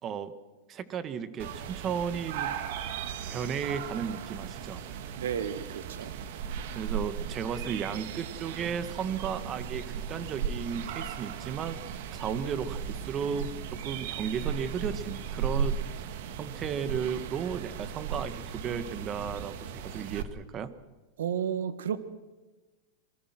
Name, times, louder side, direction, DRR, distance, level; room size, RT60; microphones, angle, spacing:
voice 1, 0.0-0.3 0.7-2.6 3.3-4.8 6.8-11.8 12.1-15.8 16.4-20.8, right 7 dB, 35° right, 12 dB, 1.8 m, -34 dB
sound 1, 1.4-20.2, right 7 dB, 70° right, 2.0 m, -36 dB
voice 2, 5.2-6.1 21.2-22.0, right 8 dB, 85° right, 13 dB, 1.8 m, -32 dB
26.5 x 21.0 x 6.2 m, 1.2 s
hypercardioid pair, 115°, 0 cm